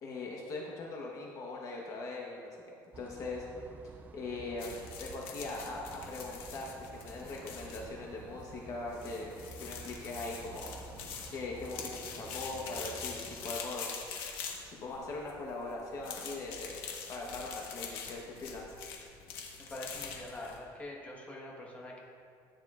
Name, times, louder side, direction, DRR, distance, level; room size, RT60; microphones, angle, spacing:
voice 1, 0.0-2.6 3.0-3.5 4.1-14.0 14.6-16.8 17.1-18.8, left 2 dB, 40° left, -2 dB, 1.1 m, -41 dB
sound 1, 2.9-13.6, right 4 dB, 20° right, 0.3 m, -51 dB
sound 2, 4.6-20.6, left 6 dB, 85° left, 1.4 m, -44 dB
voice 2, 19.7-22.0, left 1 dB, 15° left, -2 dB, 1.3 m, -44 dB
14.0 x 9.2 x 2.5 m, 2.4 s
cardioid pair, 165°, 9 cm